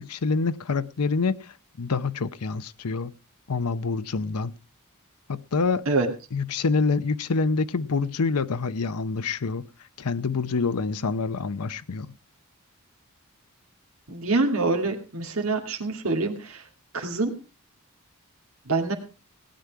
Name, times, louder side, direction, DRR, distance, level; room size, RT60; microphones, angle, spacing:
voice 1, 0.0-3.1 3.5-4.5 5.3-5.9 6.3-9.6 10.0-12.1, left 4 dB, 90° left, 0.7 m, -26 dB
voice 2, 14.1-16.7 16.9-17.3 18.7-18.9, right 3 dB, 65° right, 2.3 m, -25 dB
17.5 x 9.7 x 4.7 m
head